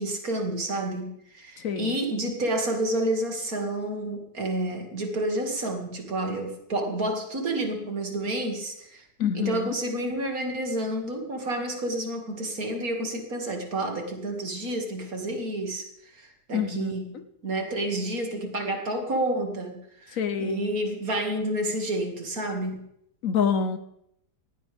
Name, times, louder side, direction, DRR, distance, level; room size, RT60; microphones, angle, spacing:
voice 1, 0.0-9.1 9.3-22.9, right 1 dB, 60° right, 2 dB, 2.8 m, -30 dB
voice 2, 1.6-2.0 9.2-9.7 16.5-17.2 20.1-20.7 23.2-23.8, left 6 dB, 60° left, 10 dB, 1.2 m, -27 dB
18.5 x 16.5 x 3.5 m, 0.76 s
omnidirectional pair, 1.7 m